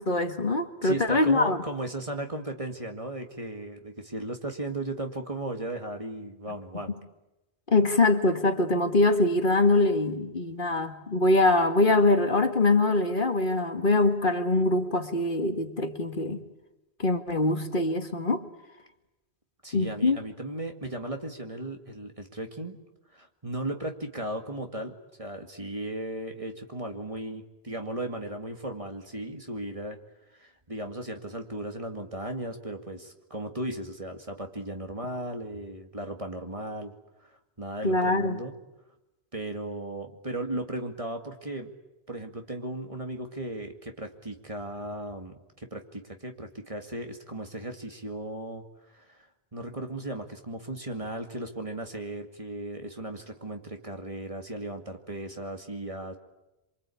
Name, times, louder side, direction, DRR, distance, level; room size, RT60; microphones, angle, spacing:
voice 1, 0.0-1.6 7.7-16.4 17.0-18.4 19.7-20.2 37.8-38.4, left 2 dB, 50° left, 6 dB, 2.1 m, -23 dB
voice 2, 0.8-7.0 19.6-22.8 23.1-30.0 30.3-36.9 37.2-37.3 37.6-38.5 39.3-41.7 42.1-48.6 48.9-49.3 49.5-56.2, right 1 dB, 30° right, 4 dB, 2.3 m, -36 dB
28.0 x 24.0 x 8.6 m, 0.96 s
omnidirectional pair, 1.1 m